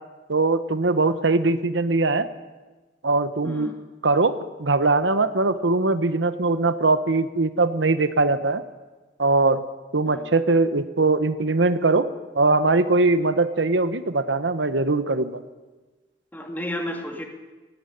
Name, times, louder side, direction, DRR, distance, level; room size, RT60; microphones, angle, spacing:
voice 1, 0.3-2.3 3.0-3.7 4.0-8.6 9.2-9.6 9.9-12.1 12.3-15.4, right 3 dB, 80° right, 12 dB, 1.1 m, -21 dB
voice 2, 3.4-3.7 10.1-10.2 16.3-17.2, equal, 10° left, 2 dB, 2.7 m, -32 dB
19.0 x 15.5 x 9.9 m, 1.2 s
head